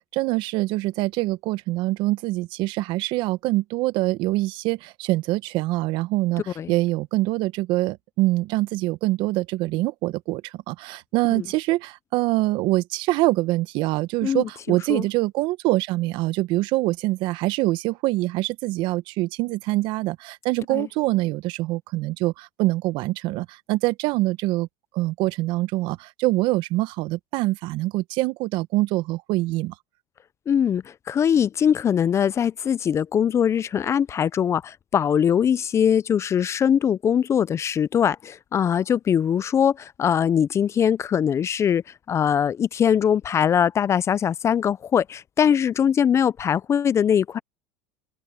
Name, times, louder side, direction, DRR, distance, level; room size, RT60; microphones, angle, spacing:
voice 1, 0.1-24.7 24.9-29.7, right 19 dB, 60° right, 1.1 m, -24 dB
voice 2, 14.2-15.0 20.7-20.9 30.5-41.8 42.1-47.4, left 8 dB, 30° left, 0.5 m, -22 dB
supercardioid pair, 100°, 9 cm